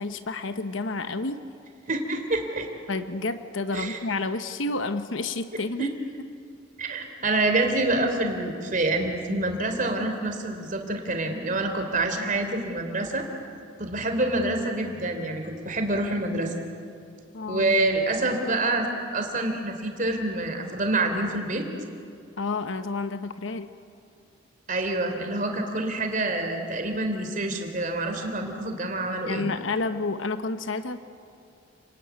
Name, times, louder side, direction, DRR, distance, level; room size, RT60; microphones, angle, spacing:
voice 1, 0.0-1.4 2.9-5.9 17.3-17.8 22.4-23.7 29.3-31.0, left 3 dB, 75° left, 10 dB, 1.0 m, -30 dB
voice 2, 1.9-2.7 3.7-4.0 5.8-5.9 6.8-13.3 13.8-16.5 17.5-21.7 24.7-29.5, right 2 dB, 40° right, 5 dB, 3.4 m, -27 dB
30.0 x 20.5 x 9.6 m, 2.5 s
head